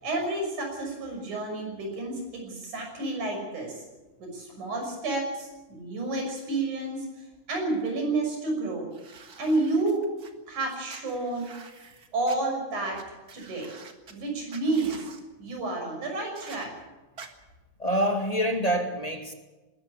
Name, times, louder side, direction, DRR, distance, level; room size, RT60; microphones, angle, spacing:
voice 1, 0.0-3.8 4.2-7.1 7.5-8.9 9.4-10.0 10.5-11.5 12.1-13.0 13.3-13.7 14.1-15.1 15.4-16.7, right 2 dB, 85° right, 2 dB, 7.3 m, -30 dB
sound 1, 8.9-10.3 10.9-12.4 12.9-13.0 13.3-14.1 14.5-15.2 16.3-16.7 17.2-17.3, right 5 dB, 40° right, 1.8 m, -47 dB
voice 2, 17.8-19.3, equal, 15° left, 4 dB, 1.8 m, -26 dB
20.0 x 13.5 x 9.9 m, 1.2 s
omnidirectional pair, 3.4 m